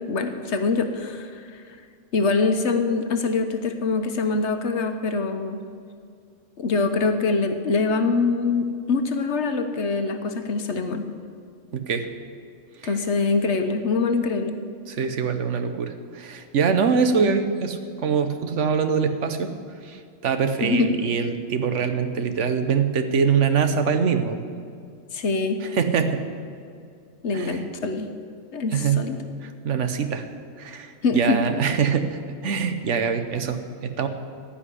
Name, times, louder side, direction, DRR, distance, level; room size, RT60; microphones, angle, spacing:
voice 1, 0.0-1.6 2.1-5.6 6.6-11.1 12.8-14.6 20.6-20.9 25.1-25.6 27.2-28.1 28.5-29.2 31.0-31.4, left 3 dB, 65° left, 7 dB, 1.2 m, -24 dB
voice 2, 11.7-12.1 12.8-12.9 14.9-19.5 19.8-24.4 25.7-26.2 27.3-27.6 28.7-29.0 29.4-30.3 30.6-34.1, right 6 dB, 75° right, 9 dB, 1.2 m, -24 dB
15.0 x 5.7 x 9.9 m, 2.2 s
omnidirectional pair, 1.3 m